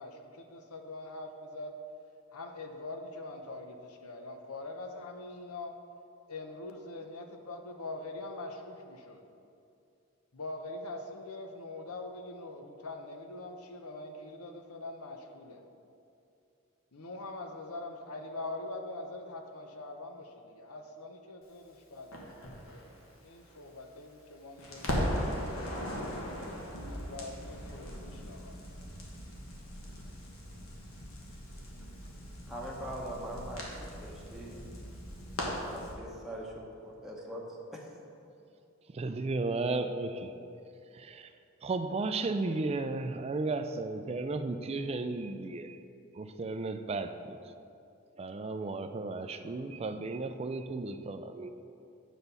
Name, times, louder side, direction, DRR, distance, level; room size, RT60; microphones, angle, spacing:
voice 1, 0.0-1.7 2.3-5.7 6.3-9.2 10.3-15.6 16.9-22.1 22.4-22.9 23.2-25.3 26.1-28.6, left 2 dB, 90° left, 4 dB, 0.8 m, -43 dB
Crackle, 22.1-24.3 24.6-35.9, equal, 75° left, 1.5 m, -39 dB
voice 2, 32.5-34.7 35.7-37.4 37.7-37.8, equal, ahead, -4 dB, 0.8 m, -42 dB
voice 3, 38.9-40.3 40.9-41.3 41.6-45.8 46.1-47.4 48.2-51.5, right 3 dB, 30° right, 9 dB, 0.3 m, -34 dB
7.9 x 4.1 x 6.8 m, 2.6 s
head